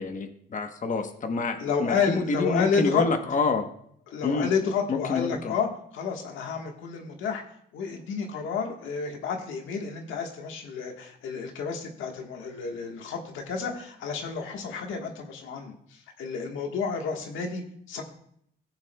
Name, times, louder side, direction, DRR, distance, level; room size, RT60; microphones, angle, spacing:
voice 1, 0.0-3.7 4.2-4.5 4.9-5.5, left 4 dB, 40° left, 6 dB, 1.0 m, -28 dB
voice 2, 1.6-3.1 4.1-7.4 7.7-18.0, left 5 dB, 85° left, 2 dB, 1.4 m, -30 dB
17.5 x 7.1 x 2.3 m, 0.69 s
cardioid pair, 90°, 20 cm